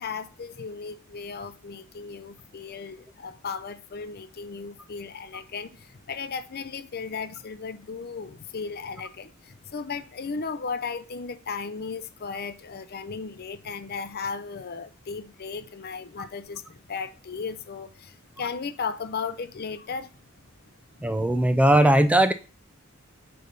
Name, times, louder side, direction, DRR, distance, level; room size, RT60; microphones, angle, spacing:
voice 1, 0.0-20.1, left 5 dB, 45° left, 0.6 m, -35 dB
voice 2, 21.0-22.3, right 1 dB, 5° right, 0.4 m, -19 dB
7.8 x 3.3 x 5.4 m
head